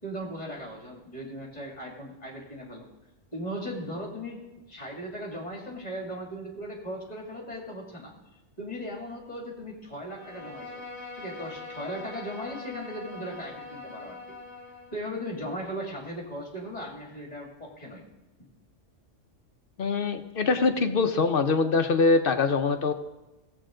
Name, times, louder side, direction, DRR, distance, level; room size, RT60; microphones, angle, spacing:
voice 1, 0.0-2.9 3.3-4.4 4.7-8.1 8.6-10.8 11.1-14.2 14.9-18.0, equal, 30° left, -1 dB, 2.6 m, -37 dB
Bowed string instrument, 10.1-15.0, left 3 dB, 50° right, 3.5 m, -42 dB
voice 2, 19.8-22.9, left 4 dB, 55° left, 7 dB, 0.8 m, -23 dB
16.5 x 7.9 x 3.8 m, 1.1 s
omnidirectional pair, 1.3 m